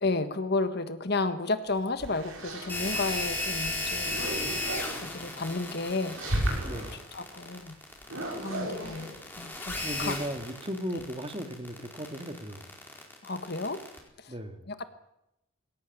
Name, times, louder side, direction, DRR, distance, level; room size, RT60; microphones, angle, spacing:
voice 1, 0.0-4.5 5.0-6.2 7.1-7.8 8.4-10.1 10.9-11.0 13.2-13.8 14.2-14.3 14.7-14.8, left 3 dB, 50° left, 10 dB, 1.5 m, -32 dB
sound 1, 1.7-3.3 3.7-5.1 5.9-6.9 8.0-10.1, right 1 dB, 80° right, 6.6 m, -34 dB
sound 2, 2.7-14.0, left 2 dB, 10° left, 4.3 m, -35 dB
voice 2, 6.6-7.0 9.8-12.7 14.3-14.7, equal, 25° right, 7 dB, 2.0 m, -36 dB
20.5 x 17.0 x 9.3 m, 0.85 s
head